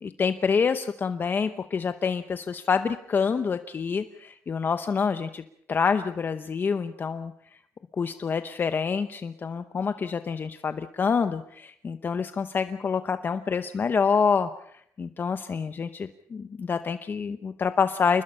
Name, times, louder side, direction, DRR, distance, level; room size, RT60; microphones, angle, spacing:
voice 1, 0.0-5.4 5.7-7.3 8.0-14.5 15.0-18.2, left 5 dB, 35° left, 10 dB, 0.8 m, -27 dB
28.5 x 21.0 x 5.6 m, 0.68 s
cardioid pair, 145°, 6 cm